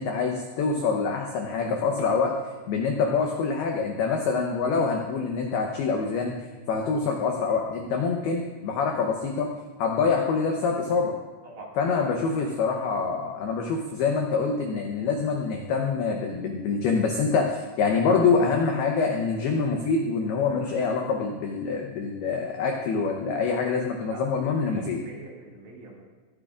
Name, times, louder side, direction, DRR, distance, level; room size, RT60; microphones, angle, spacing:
voice 1, 0.0-2.3 2.7-6.3 6.7-9.5 9.8-11.1 11.8-25.0, left 5 dB, 80° left, 2 dB, 2.3 m, -25 dB
voice 2, 11.4-12.1 12.4-12.5 24.0-26.0, right 2 dB, 50° right, -4 dB, 3.1 m, -44 dB
22.5 x 13.5 x 2.5 m, 1.3 s
omnidirectional pair, 5.8 m